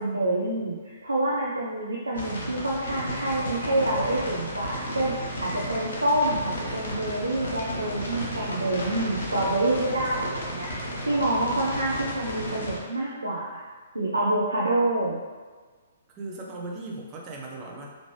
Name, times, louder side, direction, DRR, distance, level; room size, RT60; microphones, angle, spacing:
voice 1, 0.0-13.6 13.9-15.2, right 1 dB, 80° right, -6 dB, 0.6 m, -27 dB
sound 1, 2.1-12.8, equal, 65° left, 1.1 m, -33 dB
voice 2, 11.2-11.8 16.1-17.9, right 2 dB, 25° right, -1 dB, 0.6 m, -39 dB
3.4 x 2.6 x 3.3 m, 1.4 s
figure-of-eight pair, 120°, 0 cm